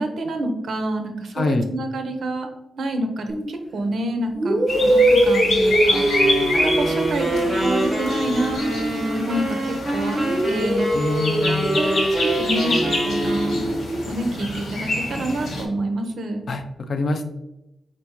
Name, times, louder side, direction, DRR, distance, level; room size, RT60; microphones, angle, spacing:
voice 1, 0.0-2.5 2.7-6.3 6.5-7.3 7.6-10.2 10.5-10.9 11.8-13.6 14.1-16.4, right 1 dB, 65° right, 5 dB, 0.7 m, -27 dB
voice 2, 1.3-1.7 10.9-11.8 16.5-17.2, left 2 dB, 45° left, 7 dB, 0.4 m, -25 dB
sound 1, 3.3-3.5 4.3-9.7 10.1-14.1, right 1 dB, 20° right, 0.9 m, -23 dB
sound 2, 4.7-15.6, left 2 dB, 80° left, 1.4 m, -27 dB
sound 3, 5.9-13.8, right 1 dB, ahead, 1.2 m, -27 dB
4.8 x 3.4 x 2.9 m, 0.91 s
wide cardioid pair, 165°, 0 cm